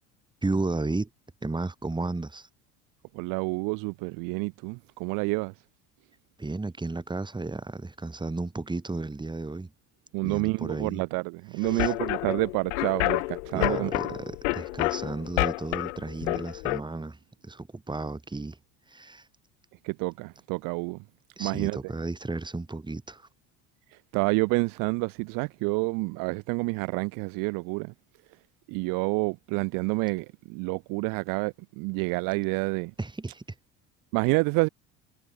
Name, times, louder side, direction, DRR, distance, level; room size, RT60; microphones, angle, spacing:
voice 1, 0.4-1.1 1.4-2.5 6.4-9.7 10.2-11.0 11.6-11.9 13.5-17.2 17.4-18.6 18.9-19.3 21.4-23.3 33.0-33.4, right 3 dB, 15° right, 5.0 m, -33 dB
voice 2, 3.1-5.5 10.1-14.2 19.8-21.0 21.4-21.8 24.1-27.9 28.7-32.9 34.1-34.7, right 30 dB, 70° right, 0.6 m, -28 dB
sound 1, 11.6-16.8, left 25 dB, 85° left, 1.1 m, -29 dB
supercardioid pair, 95°, 35 cm